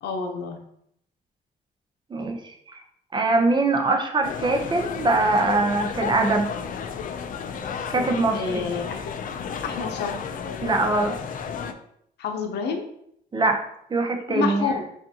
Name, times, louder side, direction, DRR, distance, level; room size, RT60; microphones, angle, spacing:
voice 1, 0.0-0.6 8.3-9.0 9.6-10.1 12.2-12.8 14.3-14.9, left 5 dB, 85° left, 4 dB, 0.7 m, -28 dB
voice 2, 3.1-6.5 7.9-8.7 10.6-11.1 13.3-13.6 13.9-14.8, right 2 dB, 25° right, 4 dB, 0.6 m, -22 dB
sound 1, 4.2-11.7, left 6 dB, 55° left, 0.4 m, -32 dB
5.0 x 2.5 x 2.8 m, 0.72 s
cardioid pair, 120°, 17 cm